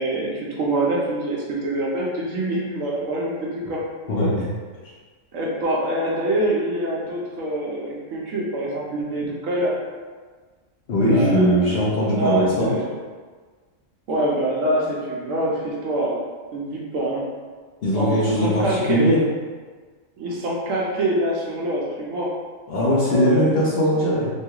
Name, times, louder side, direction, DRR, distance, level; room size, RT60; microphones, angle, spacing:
voice 1, 0.0-3.8 5.3-9.7 11.1-11.7 12.0-12.9 14.1-16.2 16.5-17.3 17.9-19.1 20.2-22.3 22.8-23.5 23.8-23.9, right 1 dB, 70° right, -3 dB, 1.0 m, -25 dB
voice 2, 4.1-4.5 10.9-12.7 17.8-19.2 22.7-24.3, equal, 55° left, -7 dB, 0.7 m, -20 dB
3.0 x 2.3 x 2.8 m, 1.5 s
omnidirectional pair, 1.4 m